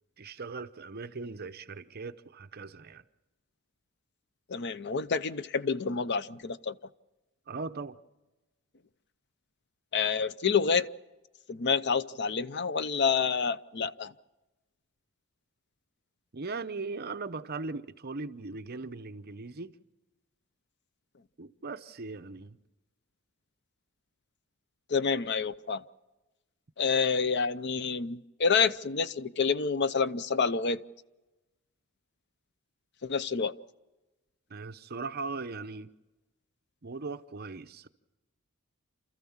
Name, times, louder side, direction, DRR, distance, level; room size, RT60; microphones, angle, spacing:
voice 1, 0.2-3.0 7.5-8.0 16.3-19.8 21.4-22.6 34.5-35.9 36.8-37.9, right 3 dB, 45° right, 0.7 m, -39 dB
voice 2, 4.5-6.7 9.9-10.9 11.5-14.1 24.9-25.8 26.8-30.8 33.0-33.5, left 5 dB, 50° left, 0.6 m, -28 dB
29.5 x 14.0 x 7.2 m
head